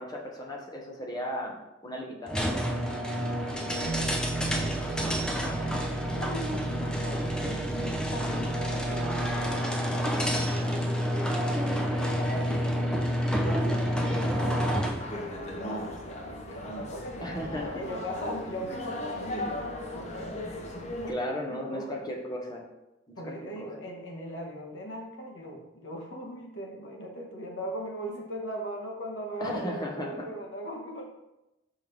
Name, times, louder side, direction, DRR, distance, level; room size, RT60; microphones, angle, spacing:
voice 1, 0.0-2.6 11.7-11.8 17.2-17.8 21.1-22.7 23.1-23.3 23.6-23.7 29.4-30.1, equal, 20° left, -1 dB, 1.0 m, -35 dB
sound 1, 2.3-15.1, equal, 5° left, 0.5 m, -29 dB
voice 2, 3.6-10.7 11.7-12.8 13.4-21.9 23.2-31.1, equal, 80° left, 0 dB, 1.3 m, -39 dB
sound 2, 3.8-9.6, right 4 dB, 75° right, 0.5 m, -37 dB
sound 3, 14.3-21.1, left 1 dB, 35° left, 0.7 m, -38 dB
5.6 x 5.4 x 3.3 m, 0.95 s
head